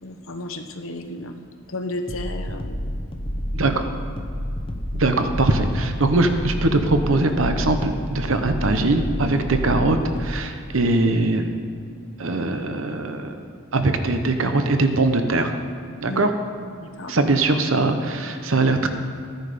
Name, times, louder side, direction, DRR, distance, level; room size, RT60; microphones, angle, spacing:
voice 1, 0.0-1.4 1.7-3.0 16.0-16.4 16.8-17.1, left 1 dB, 70° left, 6 dB, 1.0 m, -33 dB
sound 1, 2.1-10.4, equal, 25° left, 0.9 m, -29 dB
voice 2, 3.5-3.8 4.9-11.5 12.2-13.4 13.7-15.5 16.0-16.3 17.1-18.9, right 2 dB, 70° right, 7 dB, 0.9 m, -21 dB
15.0 x 10.5 x 5.1 m, 2.3 s
head